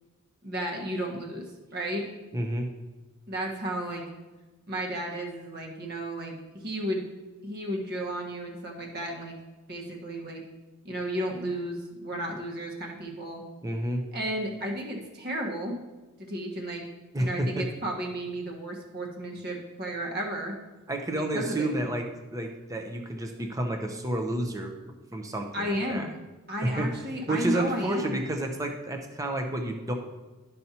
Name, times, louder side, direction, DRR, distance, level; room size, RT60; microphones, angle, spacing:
voice 1, 0.4-1.5 1.7-2.1 3.3-4.0 4.7-7.0 7.4-9.3 9.7-10.4 10.8-13.4 14.1-15.8 16.2-16.8 17.2-20.5 21.1-21.7 25.5-26.1 26.5-28.2, right 1 dB, 45° right, 0 dB, 1.4 m, -33 dB
voice 2, 2.3-2.7 13.6-14.0 17.1-17.6 20.9-24.7 25.1-26.1 26.6-26.9 27.3-29.9, right 1 dB, 15° right, 3 dB, 0.7 m, -30 dB
12.0 x 5.4 x 2.9 m, 1.2 s
head